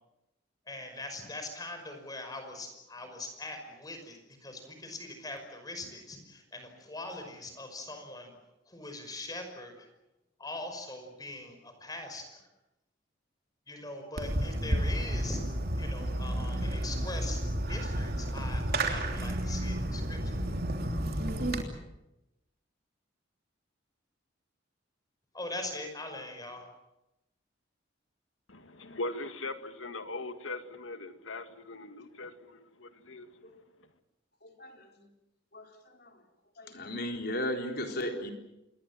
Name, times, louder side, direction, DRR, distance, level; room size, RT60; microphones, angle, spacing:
voice 1, 0.7-8.3 8.7-9.9 10.4-12.4 13.7-15.4 15.8-17.4 17.7-20.2 25.3-26.7, left 2 dB, 20° left, 6 dB, 5.6 m, -42 dB
Fireworks, 14.2-21.6, right 1 dB, 50° right, 3.2 m, -31 dB
voice 2, 28.5-33.3, left 2 dB, 90° left, 8 dB, 2.1 m, -40 dB
voice 3, 34.4-34.7 35.5-35.6 36.0-36.1 36.6-38.3, left 1 dB, 55° left, 3 dB, 4.0 m, -35 dB
27.5 x 21.5 x 7.5 m, 0.92 s
head